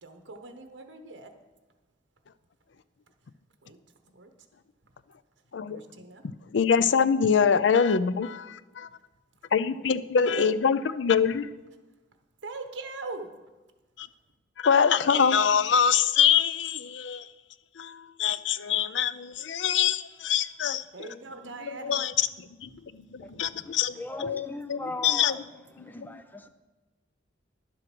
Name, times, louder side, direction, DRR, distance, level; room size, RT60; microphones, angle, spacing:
voice 1, 0.0-1.3 3.6-3.8 4.1-4.3 5.7-6.2 10.3-10.6 12.4-13.3 20.9-22.0 23.2-23.5, right 3 dB, 75° right, 1.0 m, -40 dB
voice 2, 6.2-8.9 9.5-11.5 14.0-14.1 14.6-17.3 17.8-20.8 21.8-25.4 25.8-26.2, left 7 dB, 75° left, 0.5 m, -25 dB
voice 3, 23.7-25.4 25.8-26.5, left 2 dB, 10° left, 0.5 m, -38 dB
11.0 x 7.7 x 6.1 m
head